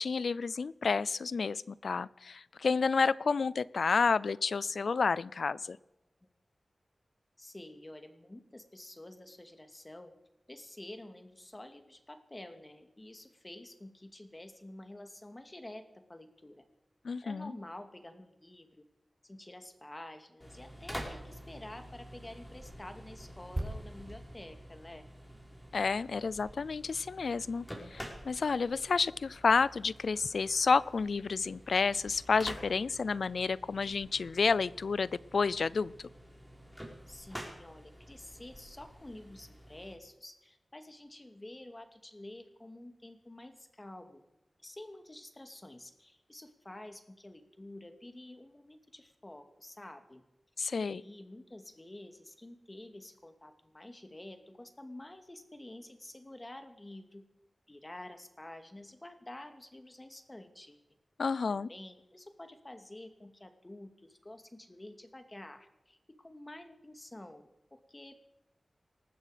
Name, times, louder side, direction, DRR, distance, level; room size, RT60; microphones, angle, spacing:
voice 1, 0.0-5.8 17.0-17.5 25.7-27.7 27.9-36.1 50.6-51.0 61.2-61.7, left 5 dB, 85° left, 21 dB, 0.4 m, -30 dB
voice 2, 7.4-10.1 10.5-16.7 17.2-18.9 19.2-25.1 37.1-44.2 44.6-50.2 50.8-57.3 57.7-60.8 61.5-68.3, left 1 dB, 30° left, 7 dB, 2.3 m, -49 dB
sound 1, 20.4-40.0, equal, 5° left, 5.0 m, -49 dB
sound 2, 23.6-27.2 27.5-27.7, right 1 dB, 25° right, 3.8 m, -43 dB
20.0 x 14.0 x 5.1 m, 0.98 s
cardioid pair, 50°, 0 cm